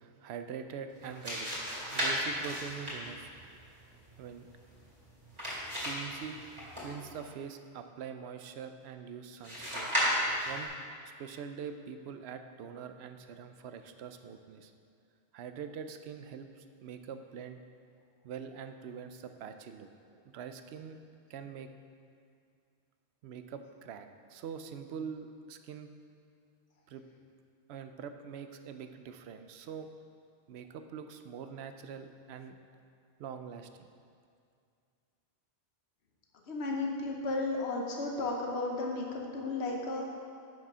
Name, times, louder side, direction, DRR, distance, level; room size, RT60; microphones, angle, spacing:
voice 1, 0.0-1.5 1.9-3.3 4.2-4.5 5.8-6.4 6.8-9.9 10.5-10.7 11.2-14.7 15.3-17.6 18.2-21.0 21.3-21.7 23.2-25.9 26.9-27.0 27.7-29.9 30.5-32.6 33.2-33.9, right 7 dB, 80° right, 8 dB, 0.8 m, -44 dB
sound 1, 0.9-7.2 9.4-10.7, equal, 25° right, 2.3 m, -35 dB
voice 2, 36.5-40.1, left 2 dB, 85° left, 0 dB, 1.2 m, -34 dB
7.4 x 6.1 x 5.5 m, 2.3 s
omnidirectional pair, 1.1 m